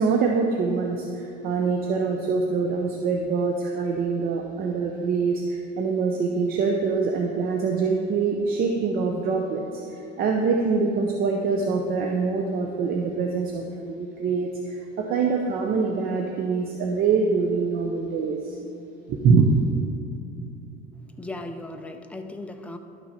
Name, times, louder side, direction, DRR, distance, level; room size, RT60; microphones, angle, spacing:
voice 1, 0.0-18.6 19.1-19.6, right 4 dB, 50° right, 2 dB, 0.7 m, -24 dB
voice 2, 21.2-22.8, left 2 dB, 5° left, 5 dB, 0.5 m, -37 dB
11.5 x 5.9 x 4.2 m, 2.8 s
cardioid pair, 135°, 20 cm